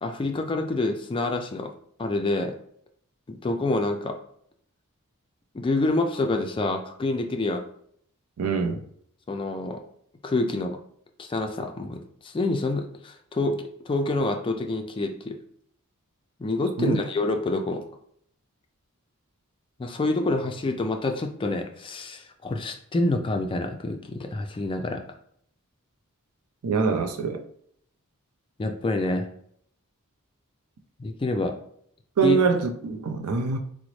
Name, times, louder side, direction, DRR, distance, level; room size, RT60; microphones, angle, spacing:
voice 1, 0.0-1.7 2.0-2.5 3.3-4.2 5.5-7.6 9.3-9.8 10.2-10.8 11.2-15.3 16.4-17.8 19.8-25.0 28.6-29.3 31.0-31.5 32.2-32.4, left 2 dB, 25° left, 0.3 m, -27 dB
voice 2, 8.4-8.8 16.8-17.0 26.6-27.4 32.2-33.6, right 5 dB, 85° right, 0.5 m, -24 dB
3.8 x 2.0 x 3.0 m
head